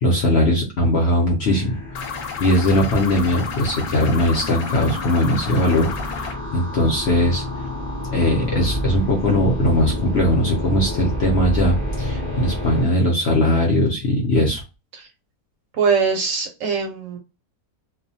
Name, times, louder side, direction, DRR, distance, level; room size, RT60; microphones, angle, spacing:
voice 1, 0.0-2.1 2.4-7.4 8.1-14.6, left 1 dB, 55° left, 0 dB, 0.7 m, -20 dB
sound 1, 1.4-12.8, left 1 dB, 20° left, 0.5 m, -29 dB
sound 2, 2.0-6.4, left 6 dB, 75° left, 1.0 m, -32 dB
voice 2, 15.7-17.2, right 5 dB, 70° right, 3 dB, 0.9 m, -22 dB
2.4 x 2.2 x 2.6 m, 0.28 s
omnidirectional pair, 1.6 m